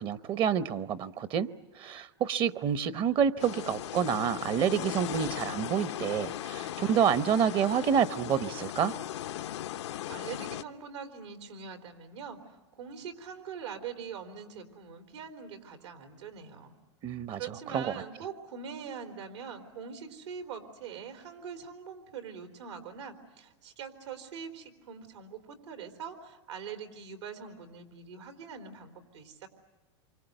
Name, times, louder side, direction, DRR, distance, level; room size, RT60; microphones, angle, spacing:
voice 1, 0.0-1.5 1.8-8.9 17.0-17.4 17.7-17.9, right 8 dB, 35° right, 15 dB, 0.9 m, -28 dB
sound 1, 3.4-10.6, left 12 dB, 80° left, 0.8 m, -38 dB
voice 2, 10.1-16.7 17.4-29.5, right 6 dB, 85° right, 6 dB, 3.8 m, -43 dB
27.5 x 25.0 x 8.0 m, 1.2 s
hypercardioid pair, 120°, 14 cm